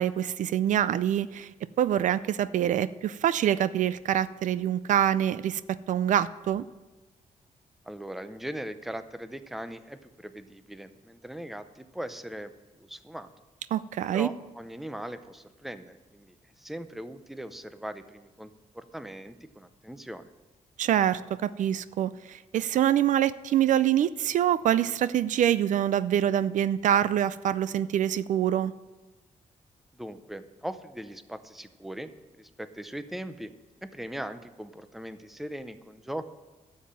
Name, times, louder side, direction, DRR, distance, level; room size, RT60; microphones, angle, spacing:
voice 1, 0.0-1.5 1.8-6.7 13.7-14.3 20.8-28.7, right 10 dB, 70° right, 16 dB, 0.4 m, -25 dB
voice 2, 7.9-12.5 12.8-13.3 14.1-20.3 29.9-33.5 33.8-36.2, right 1 dB, ahead, 11 dB, 0.6 m, -40 dB
12.5 x 7.4 x 8.9 m, 1.2 s
wide cardioid pair, 155°, 13 cm